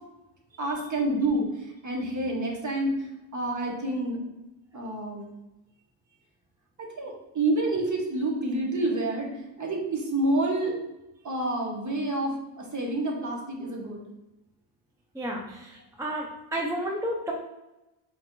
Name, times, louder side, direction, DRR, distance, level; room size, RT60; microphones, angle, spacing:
voice 1, 0.6-3.0 3.3-4.2 4.7-5.3 6.8-10.8 11.2-14.0, right 2 dB, 35° right, 0 dB, 1.2 m, -28 dB
voice 2, 15.1-17.3, right 1 dB, 5° right, 0 dB, 0.4 m, -32 dB
4.2 x 2.5 x 4.4 m, 0.96 s
cardioid pair, 110°, 50 cm